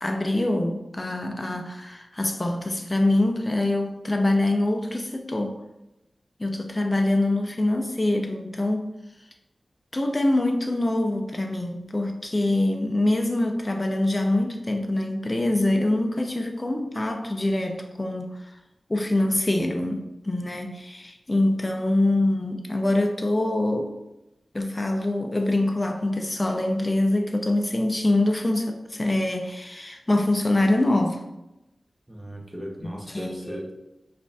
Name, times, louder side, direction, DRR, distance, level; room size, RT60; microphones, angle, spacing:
voice 1, 0.0-5.5 6.4-8.9 9.9-18.5 18.9-23.9 24.5-31.2 33.1-33.6, left 1 dB, 30° left, 4 dB, 0.4 m, -24 dB
voice 2, 32.1-33.7, right 1 dB, 10° right, -1 dB, 0.7 m, -37 dB
5.1 x 2.5 x 2.3 m, 0.93 s
wide cardioid pair, 55°, 0 cm